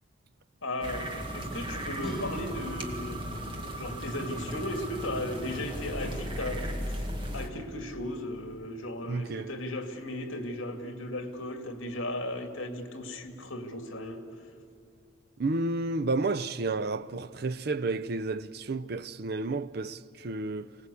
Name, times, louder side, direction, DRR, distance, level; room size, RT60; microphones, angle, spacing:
voice 1, 0.6-3.3 3.8-7.1 7.3-14.2, left 1 dB, 70° left, 2.2 m, -36 dB
sound 1, 0.8-7.5, equal, 25° right, 1.9 m, -36 dB
sound 2, 1.9-8.3, left 1 dB, ahead, 3.9 m, -48 dB
voice 2, 9.0-9.5 15.4-20.8, right 3 dB, 50° right, 0.5 m, -31 dB
25.5 x 18.5 x 8.4 m
head